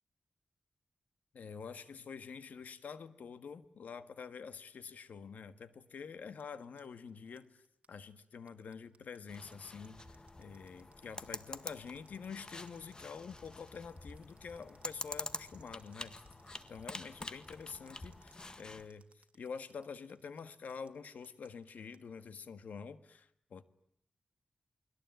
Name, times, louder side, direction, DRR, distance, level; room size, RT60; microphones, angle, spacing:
voice 1, 1.3-7.6 7.9-16.1 16.7-23.6, left 6 dB, 85° left, 11 dB, 1.6 m, -47 dB
sound 1, 6.2-22.0, right 5 dB, 55° right, 2.7 m, -67 dB
sound 2, 9.3-18.9, left 2 dB, 30° left, 1.8 m, -47 dB
29.5 x 21.5 x 9.3 m, 0.74 s
wide cardioid pair, 90°, 3 cm